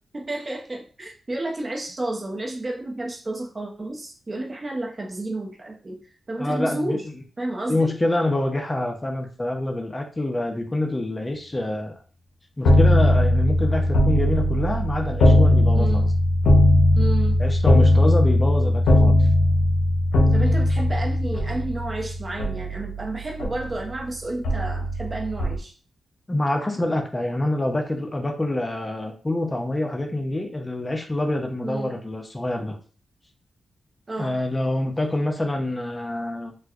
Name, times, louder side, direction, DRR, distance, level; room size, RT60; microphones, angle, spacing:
voice 1, 0.1-6.0 6.3-7.0 7.4-7.9 15.7-16.1 17.0-17.4 20.3-25.7 31.6-31.9 34.1-34.4, right 2 dB, 35° right, 0 dB, 0.7 m, -31 dB
voice 2, 6.4-7.0 7.7-11.9 12.6-16.1 17.4-19.1 26.3-32.8 34.2-36.5, left 1 dB, 25° left, 3 dB, 0.6 m, -26 dB
sound 1, 12.7-24.0 24.4-25.6, left 1 dB, 90° left, 0.7 m, -19 dB
4.3 x 2.2 x 2.4 m, 0.40 s
cardioid pair, 65°, 0 cm